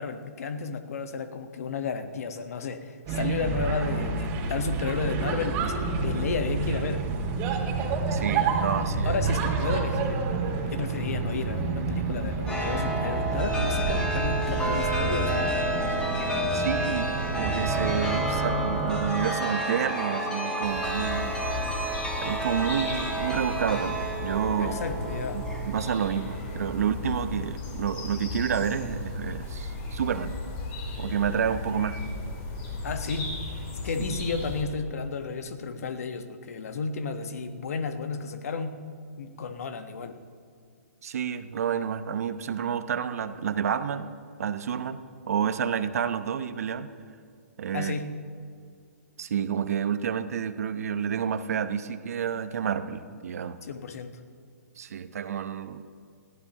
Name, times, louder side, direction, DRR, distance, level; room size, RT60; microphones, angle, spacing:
voice 1, 0.0-7.1 9.0-10.2 10.7-15.7 24.6-25.4 32.8-33.3 33.8-38.8 39.2-40.2 47.7-48.1 53.6-54.2, left 4 dB, 65° left, 9 dB, 1.2 m, -32 dB
sound 1, 3.1-19.1, right 4 dB, 25° right, 2.0 m, -29 dB
voice 2, 8.1-9.2 16.5-24.7 25.3-30.3 31.0-32.0 41.0-44.1 44.4-45.0 45.3-46.9 47.6-47.9 49.2-53.6 54.8-55.9, right 8 dB, 65° right, 12 dB, 0.8 m, -29 dB
Chime, 12.5-26.7, right 1 dB, 10° left, 1.4 m, -30 dB
sound 2, 20.6-34.6, left 2 dB, 35° left, 3.5 m, -35 dB
20.5 x 15.0 x 2.9 m, 2.2 s
hypercardioid pair, 140°, 9 cm